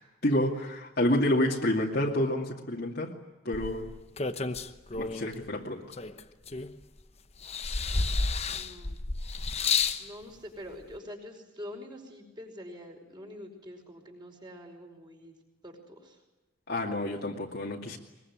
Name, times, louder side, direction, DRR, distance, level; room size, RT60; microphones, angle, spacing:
voice 1, 0.2-3.1 3.4-3.9 5.0-5.8 16.7-18.0, left 1 dB, 50° left, -2 dB, 2.5 m, -28 dB
sound 1, 3.5-5.3 5.9-7.0 7.4-10.0 10.9-11.0, left 4 dB, 30° left, 1.0 m, -31 dB
voice 2, 8.5-9.0 10.0-15.3 15.6-16.2, left 1 dB, 20° right, 3 dB, 5.1 m, -45 dB
22.5 x 22.5 x 9.6 m, 1.1 s
head